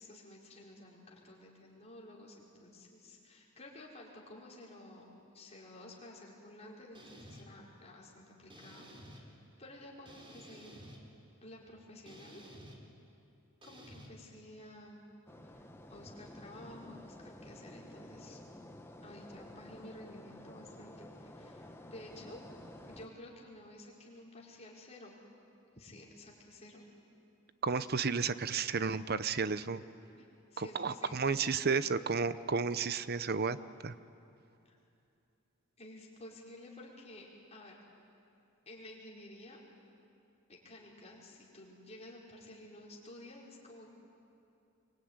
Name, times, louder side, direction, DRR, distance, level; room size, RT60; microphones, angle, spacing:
voice 1, 0.0-8.9 9.1-10.7 11.4-12.4 13.6-15.0 15.4-18.4 19.0-22.4 22.9-25.2 25.7-26.9 30.2-31.4 34.6-34.8 35.8-37.8 38.6-39.6 40.5-43.9, left 1 dB, 30° left, -3 dB, 5.1 m, -52 dB
sound 1, 6.9-7.4 8.5-9.2 10.1-11.0 12.1-12.8 13.6-14.1, right 1 dB, 25° right, 3.6 m, -52 dB
sound 2, 15.3-23.1, left 1 dB, 10° left, 1.4 m, -52 dB
voice 2, 27.6-29.8 30.6-33.6 33.8-33.9, right 5 dB, 50° right, 14 dB, 0.8 m, -32 dB
25.5 x 24.0 x 9.7 m, 2.8 s
head